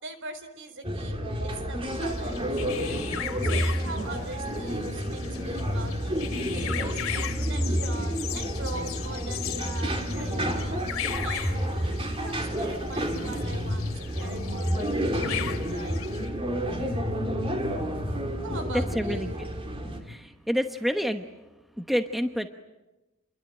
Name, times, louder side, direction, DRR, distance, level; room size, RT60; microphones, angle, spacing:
voice 1, 0.0-3.1 3.4-6.3 6.5-10.9 11.2-11.7 12.1-16.0 18.4-19.4, right 2 dB, 55° right, 10 dB, 4.1 m, -42 dB
sound 1, 0.8-20.0, equal, 25° right, 3.5 m, -30 dB
sound 2, 1.9-16.3, left 9 dB, 65° left, 2.5 m, -38 dB
voice 2, 18.9-19.5 20.0-21.3 21.8-22.5, equal, ahead, 6 dB, 1.0 m, -28 dB
29.0 x 22.5 x 9.1 m, 1.1 s
head